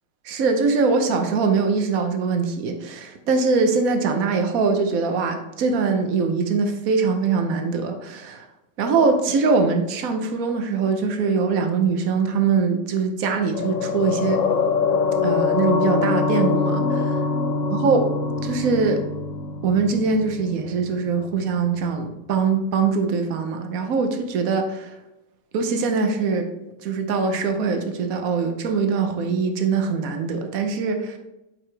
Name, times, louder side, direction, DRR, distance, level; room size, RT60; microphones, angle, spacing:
voice 1, 0.2-8.5 8.8-14.4 15.2-17.2 17.7-18.1 18.4-19.0 19.6-24.9 25.5-26.5 26.8-31.2, right 4 dB, 65° right, 6 dB, 0.9 m, -22 dB
sound 1, 13.5-22.2 22.4-22.6, left 5 dB, 85° left, 0.7 m, -24 dB
8.5 x 4.8 x 3.3 m, 0.95 s
omnidirectional pair, 2.3 m